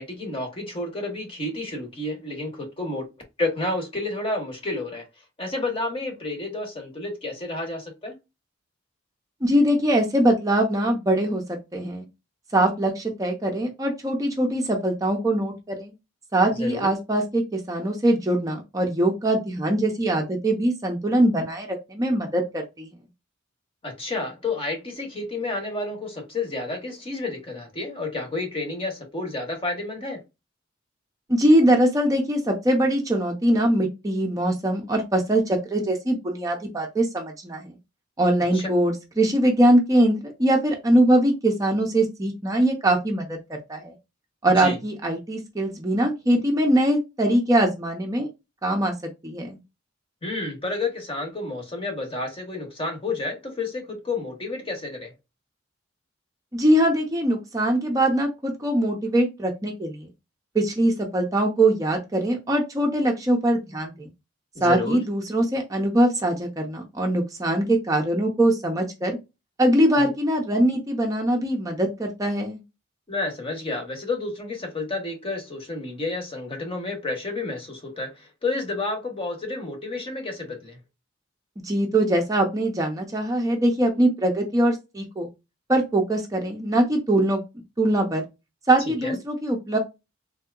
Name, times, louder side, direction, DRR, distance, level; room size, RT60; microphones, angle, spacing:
voice 1, 0.0-3.1 3.4-5.1 5.4-8.1 16.6-16.9 23.8-30.2 38.5-38.7 44.4-44.8 50.2-55.1 64.5-65.0 70.0-70.1 73.1-80.8 88.9-89.2, left 2 dB, 30° left, 1.0 m, -30 dB
voice 2, 9.4-12.0 12.5-15.9 16.3-22.9 31.3-37.7 38.2-43.9 44.4-48.3 48.6-48.9 49.2-49.6 56.5-60.1 60.5-64.1 64.6-69.2 69.6-72.6 81.6-85.3 85.7-87.4 87.8-88.2 88.7-89.8, right 1 dB, 15° right, 0.5 m, -22 dB
3.5 x 2.7 x 2.3 m
head